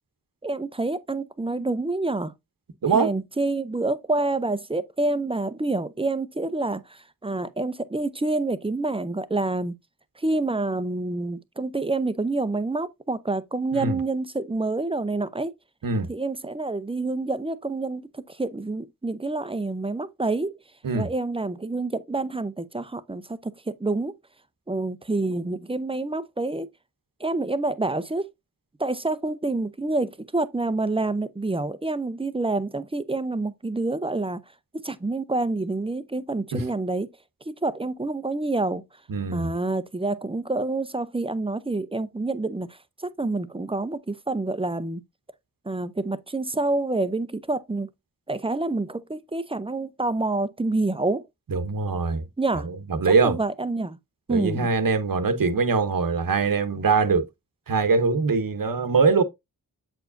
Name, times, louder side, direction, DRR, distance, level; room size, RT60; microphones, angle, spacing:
voice 1, 0.4-2.3 2.9-9.8 10.2-15.5 16.1-20.6 20.9-24.1 24.7-26.7 27.2-28.3 28.8-34.4 34.7-37.1 37.5-38.8 39.3-42.8 43.2-45.0 45.7-47.9 48.3-51.2 52.4-52.7 53.2-54.0 54.3-54.7, right 2 dB, 15° right, 0.6 m, -27 dB
voice 2, 39.1-39.5 51.5-52.2 52.6-53.4 54.3-57.3 57.7-59.2, right 4 dB, 65° right, 1.0 m, -22 dB
7.8 x 4.8 x 2.6 m
wide cardioid pair, 70°, 37 cm